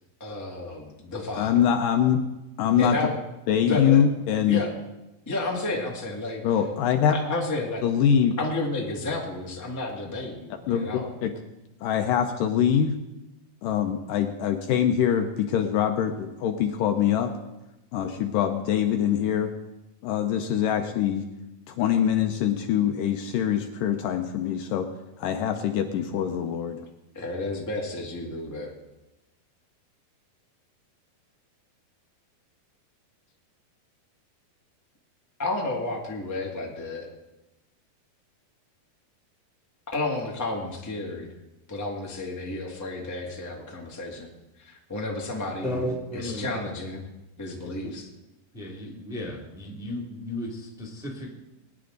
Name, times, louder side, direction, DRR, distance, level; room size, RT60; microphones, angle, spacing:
voice 1, 0.2-1.5 2.8-3.1 3.7-4.0 4.5-4.7 5.2-6.4 7.1-7.8 8.4-11.1 27.1-28.7 35.4-37.1 39.9-41.3 41.7-44.3 44.6-45.8 46.1-47.1 47.4-48.1, left 2 dB, 20° left, -2 dB, 0.4 m, -31 dB
voice 2, 1.4-2.2 2.6-3.0 3.5-4.6 6.4-7.2 7.8-8.3 10.7-10.9 11.2-11.3 11.8-12.9 13.6-17.3 17.9-19.5 20.0-21.3 21.7-24.9 25.2-26.8, left 9 dB, 75° left, 6 dB, 2.2 m, -23 dB
voice 3, 45.6-46.5 47.6-47.9 48.5-51.3, left 1 dB, ahead, 0 dB, 1.4 m, -34 dB
20.5 x 9.9 x 3.9 m, 0.97 s
omnidirectional pair, 4.4 m